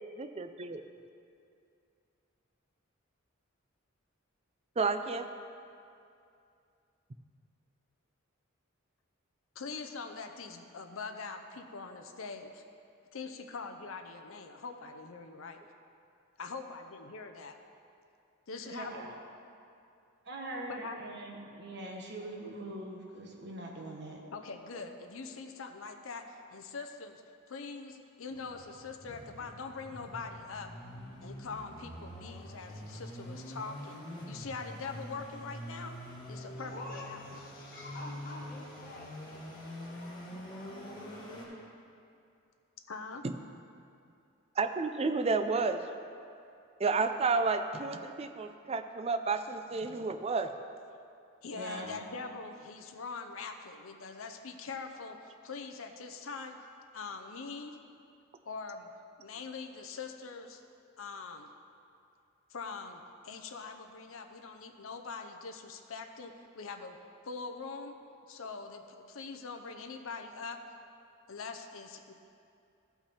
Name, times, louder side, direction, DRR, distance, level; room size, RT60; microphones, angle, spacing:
voice 1, 0.2-0.8 4.8-5.3 43.2-43.3 44.6-45.8 46.8-50.5, right 4 dB, 30° right, 8 dB, 0.4 m, -31 dB
voice 2, 9.5-12.6 13.1-15.6 16.4-17.6 18.5-19.1 20.7-21.0 24.3-27.2 27.5-30.7 31.2-35.9 36.3-37.2 42.9-43.2 51.4-56.6 56.9-57.8 58.4-58.9 59.2-60.6 61.0-61.5 62.5-67.0 67.2-68.0 68.3-70.6 71.3-72.1, left 4 dB, 70° left, 5 dB, 0.7 m, -43 dB
voice 3, 18.6-19.1 20.2-24.2 51.5-52.0, right 1 dB, 50° right, 0 dB, 1.3 m, -42 dB
sound 1, 28.3-41.4, equal, 20° left, 1.7 m, -45 dB
voice 4, 36.6-40.2 40.5-41.0 41.3-41.5, left 2 dB, 45° left, -4 dB, 1.8 m, -48 dB
14.5 x 5.8 x 4.3 m, 2.5 s
head